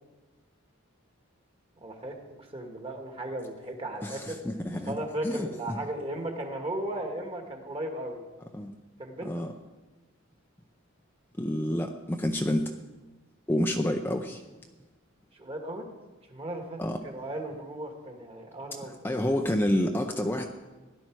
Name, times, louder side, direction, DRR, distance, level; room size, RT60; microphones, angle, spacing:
voice 1, 1.8-4.4 4.9-8.2 9.0-9.5 15.4-15.8 16.3-18.9, right 1 dB, 30° right, 3 dB, 1.7 m, -36 dB
voice 2, 4.0-4.9 5.2-5.8 8.5-8.7 9.2-9.5 11.4-12.8 13.5-14.4 16.8-17.0 18.8-20.5, left 1 dB, 10° left, 3 dB, 0.6 m, -29 dB
17.0 x 11.0 x 4.6 m, 1.2 s
head